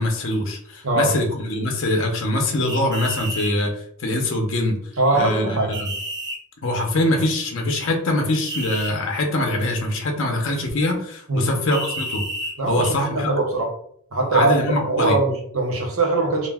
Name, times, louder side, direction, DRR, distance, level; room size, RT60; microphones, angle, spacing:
voice 1, 0.0-3.7 4.0-4.8 5.1-5.9 6.6-12.2 12.7-13.3 14.3-15.2, left 1 dB, 60° left, 2 dB, 0.6 m, -23 dB
sound 1, 2.7-3.5 5.7-6.4 8.5-8.9 11.7-12.5, right 1 dB, 20° right, 0.5 m, -30 dB
voice 2, 5.0-5.7 11.3-11.5 12.6-13.7 14.1-16.5, right 2 dB, 65° right, 1 dB, 0.7 m, -21 dB
2.4 x 2.2 x 3.4 m, 0.66 s
head